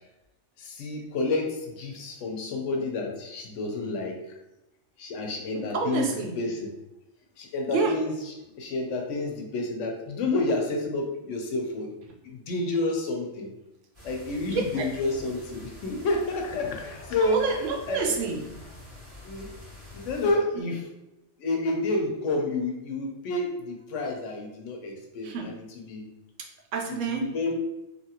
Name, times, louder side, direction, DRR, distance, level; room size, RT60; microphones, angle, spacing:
voice 1, 0.6-4.2 5.0-6.1 6.4-6.7 7.4-11.9 12.2-13.5 14.0-17.4 17.9-18.1 19.2-19.5 19.9-20.8 21.4-25.6 25.9-26.1 27.1-27.5, left 2 dB, 85° left, 2 dB, 1.0 m, -29 dB
voice 2, 5.5-6.4 7.7-8.0 14.5-14.9 17.2-18.4 25.2-25.5 26.7-27.3, right 4 dB, 85° right, 2 dB, 0.9 m, -28 dB
sound 1, 13.9-20.3, left 1 dB, 30° right, 1.4 m, -46 dB
2.8 x 2.5 x 2.8 m, 0.94 s
omnidirectional pair, 1.2 m